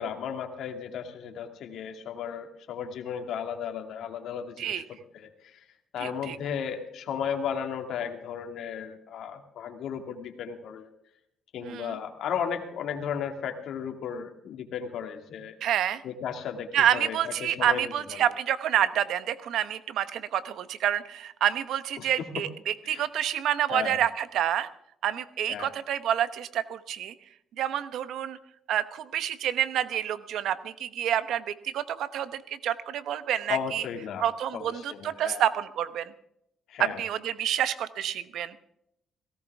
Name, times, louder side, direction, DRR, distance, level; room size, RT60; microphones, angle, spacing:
voice 1, 0.0-4.8 5.1-5.6 5.9-10.9 11.5-15.6 16.0-18.2 22.0-22.3 22.9-23.0 23.7-24.0 25.5-25.7 33.5-34.2 34.5-35.4 36.7-37.0, left 7 dB, 75° left, 5 dB, 2.2 m, -35 dB
voice 2, 6.0-6.4 11.6-12.0 15.6-16.0 16.7-24.7 25.0-27.1 27.6-28.4 28.7-33.8 34.2-36.1 36.8-38.5, right 10 dB, 80° right, 13 dB, 1.0 m, -28 dB
17.5 x 17.0 x 3.6 m, 0.77 s
cardioid pair, 90°, 0 cm